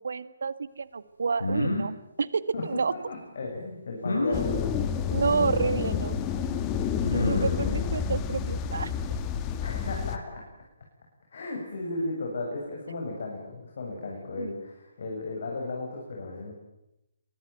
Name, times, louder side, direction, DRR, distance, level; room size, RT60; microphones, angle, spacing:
voice 1, 0.0-1.9 2.2-2.9 4.3-4.4 5.1-6.2 7.1-8.9 14.4-14.6, right 5 dB, 65° right, 15 dB, 1.7 m, -29 dB
sound 1, 1.4-1.9 4.0-4.4 5.8-5.9 7.0-7.7, left 2 dB, 75° left, 7.6 m, -28 dB
voice 2, 2.5-6.0 6.9-7.9 9.6-10.4 11.3-16.5, left 3 dB, 55° left, 0 dB, 7.7 m, -35 dB
sound 2, 4.3-10.2, left 7 dB, 20° left, 2.3 m, -29 dB
27.0 x 23.0 x 9.3 m, 0.89 s
figure-of-eight pair, 140°, 0 cm